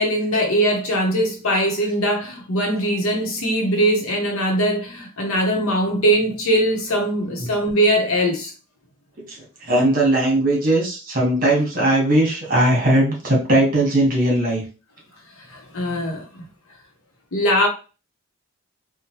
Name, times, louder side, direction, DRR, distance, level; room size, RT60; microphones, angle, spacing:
voice 1, 0.0-8.5 15.5-16.3 17.3-17.7, equal, 80° left, 0.9 m, -21 dB
voice 2, 9.6-14.6, right 1 dB, 40° right, 1.1 m, -18 dB
3.0 x 2.2 x 2.8 m
head